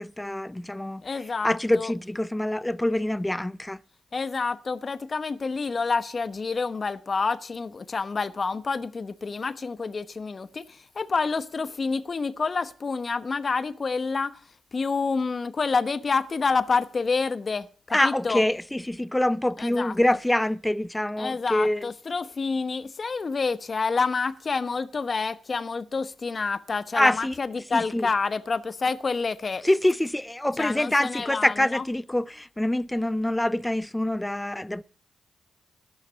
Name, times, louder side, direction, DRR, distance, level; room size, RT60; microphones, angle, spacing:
voice 1, 0.0-1.0 1.4-3.8 17.9-21.9 26.9-27.3 27.7-28.1 29.6-34.8, left 1 dB, 10° left, 0.6 m, -25 dB
voice 2, 1.0-1.9 4.1-14.4 14.7-18.4 19.6-19.9 21.2-29.6 30.6-31.8, left 4 dB, 50° left, 0.9 m, -28 dB
11.5 x 9.8 x 6.7 m
supercardioid pair, 50°, 0 cm